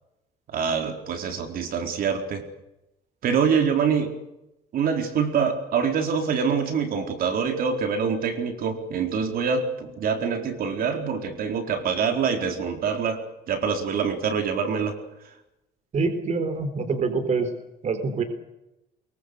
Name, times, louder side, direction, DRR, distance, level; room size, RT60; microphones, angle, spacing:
voice 1, 0.5-2.4 3.2-4.1 4.7-13.2 13.5-15.0, right 6 dB, 60° right, 5 dB, 4.3 m, -25 dB
voice 2, 15.9-17.5 17.8-18.2, right 4 dB, 45° right, 9 dB, 4.1 m, -25 dB
24.0 x 23.5 x 6.7 m, 0.90 s
cardioid pair, 110°, 17 cm